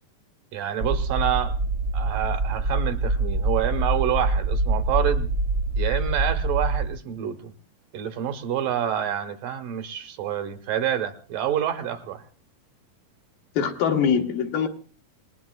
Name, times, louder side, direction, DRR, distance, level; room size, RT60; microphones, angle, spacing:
voice 1, 0.5-1.6 1.9-5.3 5.8-7.5 7.9-12.2, right 10 dB, 75° right, 8 dB, 2.5 m, -27 dB
sound 1, 0.8-6.9, right 2 dB, 55° right, 1.1 m, -25 dB
voice 2, 13.6-14.7, left 7 dB, 75° left, 3 dB, 3.0 m, -23 dB
27.5 x 20.0 x 2.3 m, 0.37 s
omnidirectional pair, 4.1 m